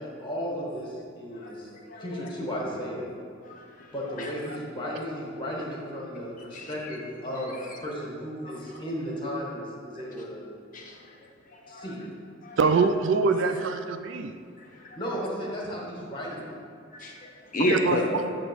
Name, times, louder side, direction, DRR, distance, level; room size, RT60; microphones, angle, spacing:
voice 1, 0.0-1.7 2.0-3.1 3.9-10.4 11.7-12.0 14.9-16.5, equal, 25° left, -3 dB, 1.4 m, -34 dB
voice 2, 1.8-2.3 3.4-4.6 6.5-7.0 7.5-7.8 8.4-8.6 10.7-11.2 11.5-11.9 12.4-12.6 14.6-15.0 16.9-18.0, left 1 dB, 40° left, 0 dB, 0.7 m, -33 dB
voice 3, 12.6-14.3 17.6-18.3, right 4 dB, 65° right, 9 dB, 0.3 m, -24 dB
7.9 x 3.0 x 6.2 m, 2.3 s
head